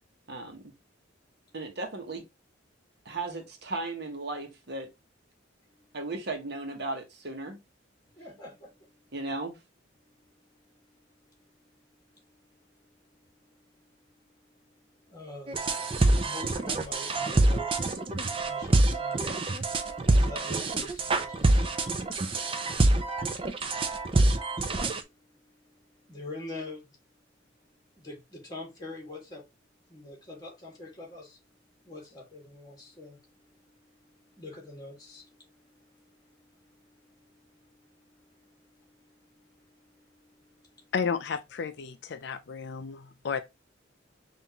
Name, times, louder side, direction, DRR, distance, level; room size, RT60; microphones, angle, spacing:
voice 1, 0.3-0.7 1.5-2.3 3.0-4.9 5.9-7.6 9.1-9.6, right 2 dB, 55° right, 1.0 m, -36 dB
voice 2, 8.2-8.7 15.1-18.0 18.4-21.8 23.5-23.7 26.1-27.0 28.0-29.4 29.9-31.4 31.8-33.2 34.3-35.5 35.8-36.2 36.7-36.8 37.7-38.3 38.8-38.9 39.3-39.5 40.6-40.8, left 1 dB, 20° left, 1.6 m, -45 dB
sound 1, 15.5-25.0, right 2 dB, 25° right, 0.5 m, -26 dB
voice 3, 40.9-43.4, left 6 dB, 60° left, 0.4 m, -32 dB
5.5 x 2.6 x 2.8 m
head